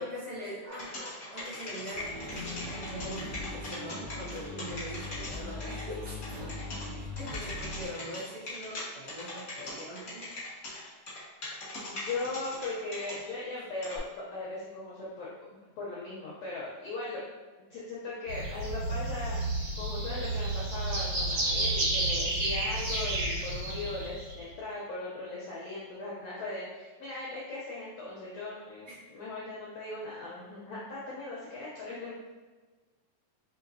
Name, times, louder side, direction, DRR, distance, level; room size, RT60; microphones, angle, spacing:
voice 1, 0.0-6.5 6.8-10.3 22.8-23.1 28.8-29.0, equal, 80° right, -8 dB, 1.3 m, -42 dB
sound 1, 0.7-5.8 6.2-6.8 7.2-8.8 9.1-13.2 13.8-14.0, left 2 dB, 60° left, 0.9 m, -40 dB
sound 2, 1.9-7.9, left 2 dB, 45° right, 0.7 m, -40 dB
voice 2, 11.8-15.3 15.8-17.2 17.7-19.4 19.8-28.9 29.1-32.3, left 2 dB, 85° left, -6 dB, 1.4 m, -38 dB
sound 3, 18.3-24.4, right 1 dB, 65° right, 2.1 m, -31 dB
4.9 x 2.9 x 2.5 m, 1.3 s
omnidirectional pair, 3.7 m